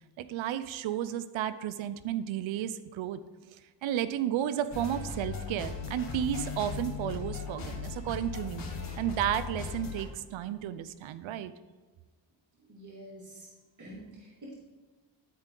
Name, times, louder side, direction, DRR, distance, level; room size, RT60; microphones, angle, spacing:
voice 1, 0.2-3.2 3.5-8.7 9.0-11.5, right 11 dB, 90° right, 13 dB, 0.6 m, -33 dB
sound 1, 4.7-10.0, left 5 dB, 70° left, 2.8 m, -38 dB
voice 2, 12.7-13.5 13.8-14.5, right 1 dB, 40° right, -5 dB, 2.4 m, -47 dB
13.5 x 4.5 x 3.8 m, 1.4 s
cardioid pair, 55°, 46 cm